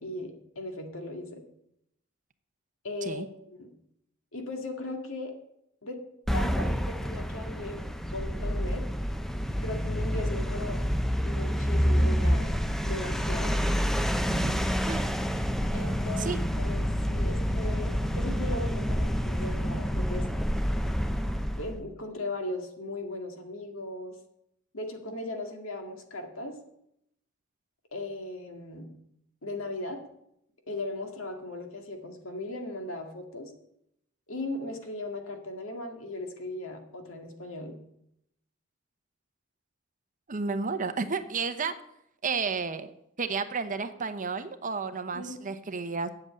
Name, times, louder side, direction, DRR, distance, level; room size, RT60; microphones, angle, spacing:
voice 1, 0.0-1.4 2.8-3.7 4.3-5.3 5.8-6.0 6.3-7.8 8.1-8.8 9.6-10.8 11.2-13.6 15.7-16.3 16.6-20.3 21.6-24.2 24.7-26.6 27.9-28.9 29.4-30.0 30.7-33.5 34.3-37.8 45.1-45.4, left 2 dB, 80° left, 4 dB, 2.0 m, -37 dB
sound 1, 6.3-21.8, equal, ahead, 0.6 m, -28 dB
voice 2, 14.3-14.6 14.9-15.1 16.2-16.4 40.3-41.7 42.2-42.9 43.2-46.1, right 4 dB, 40° right, 10 dB, 0.8 m, -32 dB
8.0 x 7.9 x 8.7 m, 0.77 s
head